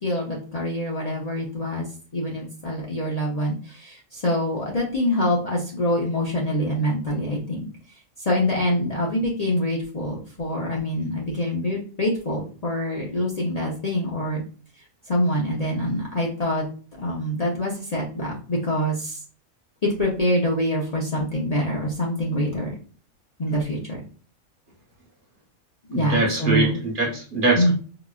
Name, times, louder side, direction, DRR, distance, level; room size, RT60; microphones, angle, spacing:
voice 1, 0.0-1.9 2.1-7.7 8.2-14.4 15.1-16.6 17.0-19.2 19.8-22.8 23.4-24.0 25.9-26.8 27.5-27.7, equal, 40° left, -4 dB, 0.7 m, -25 dB
voice 2, 25.9-27.7, right 2 dB, 45° right, -1 dB, 1.0 m, -23 dB
4.8 x 2.5 x 2.3 m, 0.40 s
omnidirectional pair, 1.3 m